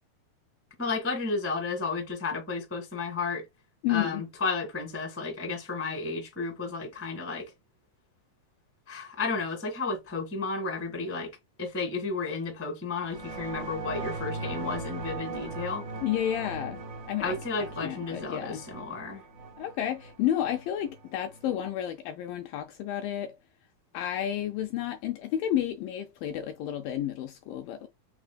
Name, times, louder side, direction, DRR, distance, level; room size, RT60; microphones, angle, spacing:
voice 1, 0.8-3.4 3.9-7.5 8.9-11.3 11.6-15.8 17.2-19.2, left 4 dB, 20° left, 0.4 m, -32 dB
voice 2, 3.8-4.2 16.0-16.8 17.1-17.4 17.8-18.6 19.6-23.4 23.9-27.9, left 11 dB, 80° left, 2.0 m, -31 dB
sound 1, 13.0-21.7, right 3 dB, 50° right, 1.3 m, -39 dB
6.0 x 3.5 x 2.2 m
omnidirectional pair, 4.5 m